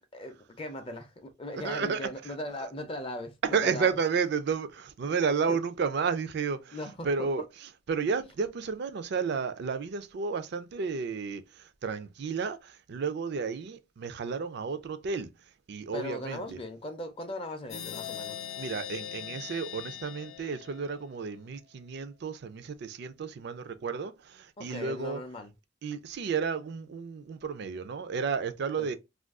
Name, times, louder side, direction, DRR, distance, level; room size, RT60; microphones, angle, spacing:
voice 1, 0.1-4.0 5.5-5.6 6.7-7.3 15.9-18.4 24.6-25.5 28.8-28.9, left 1 dB, 30° left, 0.5 m, -39 dB
voice 2, 1.5-2.3 3.4-6.8 7.0-11.4 11.8-15.3 15.7-16.6 18.6-25.2 25.8-28.9, right 5 dB, 55° right, 0.4 m, -32 dB
sound 1, 17.7-21.3, left 10 dB, 80° left, 0.6 m, -41 dB
2.4 x 2.3 x 3.4 m
head